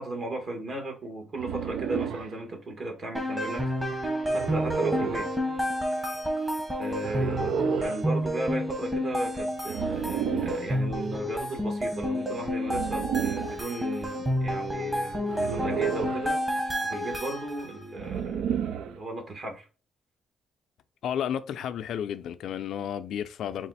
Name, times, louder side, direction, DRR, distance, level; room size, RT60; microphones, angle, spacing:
voice 1, 0.0-5.3 6.8-7.6 7.8-16.4 16.9-19.6, right 2 dB, 50° right, 1.6 m, -36 dB
sound 1, 1.4-2.3 4.3-5.3 7.0-8.0 9.7-10.7 12.6-13.6 15.3-16.3 18.0-19.0, right 8 dB, 80° right, 0.3 m, -31 dB
sound 2, 3.1-17.8, equal, 15° right, 1.1 m, -30 dB
voice 2, 21.0-23.7, left 9 dB, 75° left, 0.4 m, -32 dB
4.1 x 2.4 x 4.1 m
cardioid pair, 90°, 0 cm